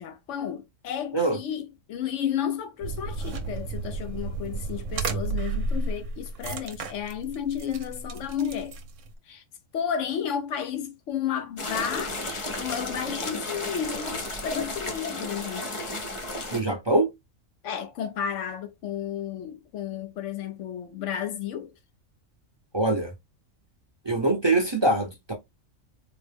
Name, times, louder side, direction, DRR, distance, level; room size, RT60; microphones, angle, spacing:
voice 1, 0.0-8.7 9.3-9.4 9.7-15.7 17.6-21.7, left 9 dB, 70° left, 0.9 m, -32 dB
sound 1, 2.8-9.1, right 3 dB, 70° right, 1.0 m, -33 dB
sound 2, 11.6-16.6, left 2 dB, 35° left, 0.6 m, -33 dB
voice 2, 16.5-17.1 22.7-23.1 24.0-25.3, right 2 dB, 25° right, 0.7 m, -23 dB
4.0 x 2.0 x 3.3 m
omnidirectional pair, 1.4 m